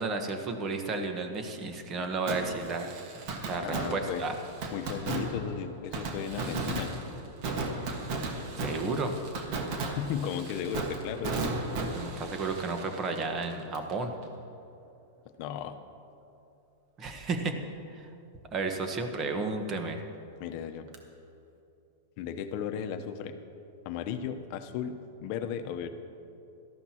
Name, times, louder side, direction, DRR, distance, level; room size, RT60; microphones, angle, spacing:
voice 1, 0.0-3.0 3.4-4.4 8.6-9.1 11.9-14.2 17.0-17.6 17.9-18.1 18.5-20.0, right 3 dB, 30° right, 6 dB, 1.3 m, -32 dB
Fireworks, 2.3-13.9 14.2-14.3 20.9-21.0, right 3 dB, 50° right, 1.6 m, -35 dB
voice 2, 3.6-4.2 4.7-6.9 10.0-11.5 15.4-15.8 20.4-20.9 22.2-23.3 23.8-25.0 25.2-25.9, left 8 dB, 50° left, 7 dB, 0.9 m, -35 dB
18.0 x 13.0 x 3.0 m, 2.7 s
hypercardioid pair, 115°, 0 cm